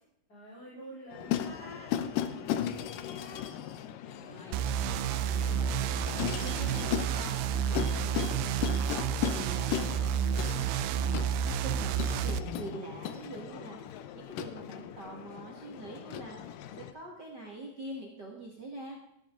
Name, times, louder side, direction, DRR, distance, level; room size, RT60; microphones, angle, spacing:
voice 1, 0.3-3.5 4.0-4.4 4.9-5.4, right 1 dB, 25° left, -9 dB, 4.4 m, -50 dB
sound 1, 1.1-16.9, left 10 dB, 75° left, 2.2 m, -37 dB
voice 2, 4.2-4.7 5.1-10.2 10.5-18.9, right 2 dB, 40° right, -1 dB, 1.6 m, -45 dB
sound 2, 4.5-12.4, right 8 dB, 90° right, 2.5 m, -30 dB
13.5 x 12.0 x 3.7 m, 0.82 s
omnidirectional pair, 4.2 m